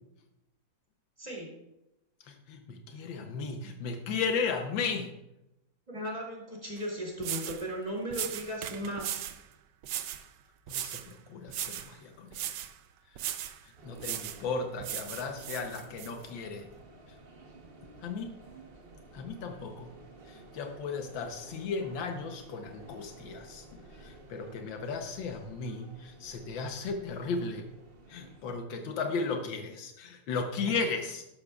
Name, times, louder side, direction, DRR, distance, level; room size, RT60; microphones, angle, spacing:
voice 1, 1.2-1.5 5.9-9.3, equal, 20° right, -2 dB, 2.8 m, -36 dB
voice 2, 2.3-5.1 10.7-12.5 13.8-16.7 18.0-18.3 19.1-19.9 20.3-27.7 28.1-31.2, left 4 dB, 85° left, 5 dB, 1.6 m, -35 dB
sound 1, 6.8-6.9 7.2-7.6 8.1-9.4 9.8-10.3 10.7-11.1 11.5-11.9 12.3-12.7 13.2-13.6 14.0-14.4 14.8-16.1, right 11 dB, 75° right, 1.3 m, -37 dB
sound 2, 13.8-28.5, right 2 dB, 40° right, 1.0 m, -53 dB
13.0 x 12.0 x 2.4 m, 0.89 s
omnidirectional pair, 2.0 m